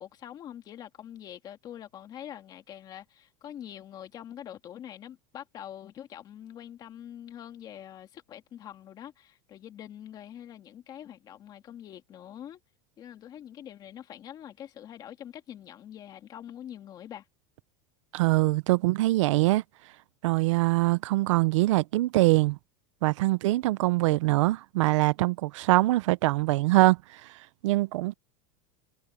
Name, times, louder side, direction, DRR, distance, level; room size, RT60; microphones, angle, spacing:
voice 1, 0.0-12.6 13.0-17.2, left 10 dB, 25° left, 2.2 m, -44 dB
voice 2, 18.1-19.6 20.2-22.6 23.0-27.0 27.6-28.1, right 19 dB, 90° right, 0.6 m, -23 dB
supercardioid pair, 175°, 15 cm